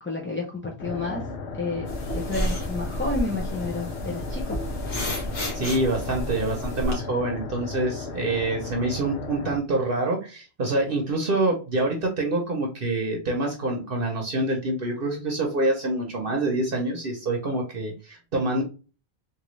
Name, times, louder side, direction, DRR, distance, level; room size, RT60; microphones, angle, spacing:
voice 1, 0.0-1.2 1.6-4.7, left 3 dB, 15° left, -2 dB, 0.5 m, -31 dB
sound 1, 0.8-9.6, left 4 dB, 85° left, 1.0 m, -35 dB
sound 2, 1.9-6.9, equal, 65° left, 1.6 m, -31 dB
voice 2, 5.5-18.6, right 2 dB, 60° right, 1 dB, 0.9 m, -26 dB
3.8 x 2.7 x 3.1 m, 0.33 s
omnidirectional pair, 1.1 m